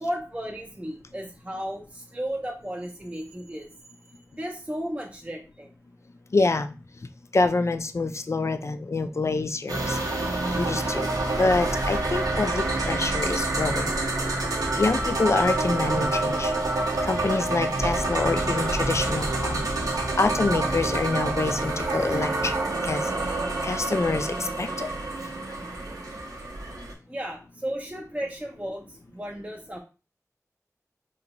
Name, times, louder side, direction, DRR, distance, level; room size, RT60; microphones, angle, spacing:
voice 1, 0.0-3.7 4.4-5.7 27.1-29.8, equal, 20° right, 0 dB, 0.5 m, -34 dB
voice 2, 6.3-6.7 7.3-10.0 10.6-11.1 11.4-13.9 14.8-16.5 17.0-19.6 20.2-22.6 22.8-23.0 23.6-24.9, left 3 dB, 50° left, 10 dB, 0.3 m, -26 dB
sound 1, 9.7-26.9, right 2 dB, 85° right, 0.8 m, -27 dB
3.9 x 2.2 x 2.9 m, 0.33 s
wide cardioid pair, 45°, 6 cm